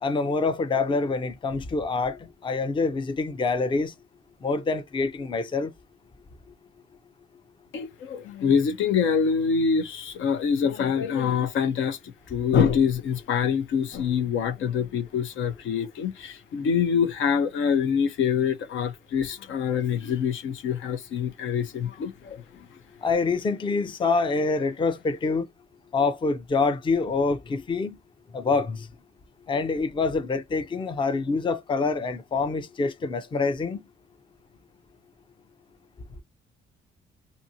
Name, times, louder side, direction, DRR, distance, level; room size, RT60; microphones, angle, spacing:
voice 1, 0.0-3.9 4.4-5.7 23.0-25.5 25.9-28.0 28.3-28.9 29.5-33.8, left 4 dB, 25° left, 0.5 m, -26 dB
voice 2, 7.7-22.7, left 7 dB, 75° left, 0.7 m, -25 dB
2.6 x 2.6 x 2.7 m
cardioid pair, 90°, 20 cm